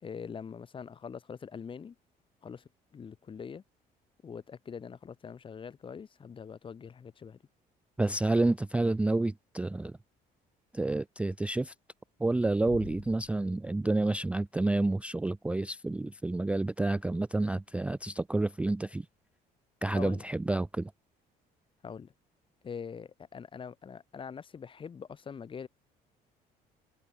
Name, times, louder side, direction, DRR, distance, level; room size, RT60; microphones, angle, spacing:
voice 1, 0.0-2.0 2.4-3.6 4.2-7.4 19.9-20.2 21.8-22.1 22.6-25.7, left 6 dB, 30° left, 0.8 m, -43 dB
voice 2, 8.0-9.9 10.7-11.7 12.2-19.1 19.8-20.9, right 2 dB, 5° right, 0.3 m, -29 dB
Bass drum, 12.7-14.1, left 20 dB, 80° left, 0.5 m, -48 dB
cardioid pair, 110°, 17 cm